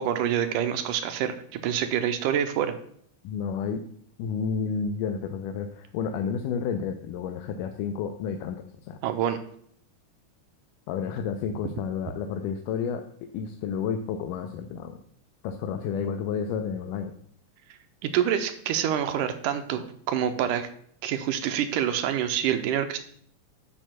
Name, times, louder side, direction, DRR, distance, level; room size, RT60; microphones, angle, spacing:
voice 1, 0.0-2.7 9.0-9.4 18.0-20.7 21.0-23.0, right 9 dB, 85° right, 8 dB, 2.1 m, -26 dB
voice 2, 3.2-3.8 4.2-9.0 10.9-13.0 13.3-15.0 15.4-17.1, left 6 dB, 85° left, 5 dB, 2.2 m, -31 dB
10.0 x 7.9 x 2.2 m, 0.62 s
omnidirectional pair, 3.7 m